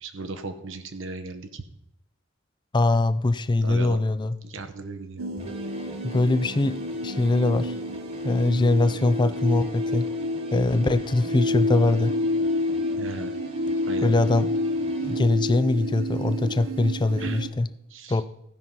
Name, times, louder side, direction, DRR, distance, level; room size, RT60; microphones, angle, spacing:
voice 1, 0.0-1.6 3.6-4.0 4.4-5.2 13.0-13.3 13.9-14.1 17.2-17.4 17.9-18.2, right 3 dB, 65° right, 7 dB, 0.9 m, -36 dB
voice 2, 2.7-4.4 6.0-7.8 8.2-10.1 10.5-12.1 14.0-14.5 15.0-17.7 18.1-18.3, left 2 dB, 20° left, 14 dB, 0.4 m, -22 dB
sound 1, 5.2-17.5, left 1 dB, 90° right, 1.0 m, -29 dB
sound 2, 5.4-15.2, right 1 dB, 30° right, 1.5 m, -46 dB
15.5 x 5.6 x 5.3 m, 0.80 s
head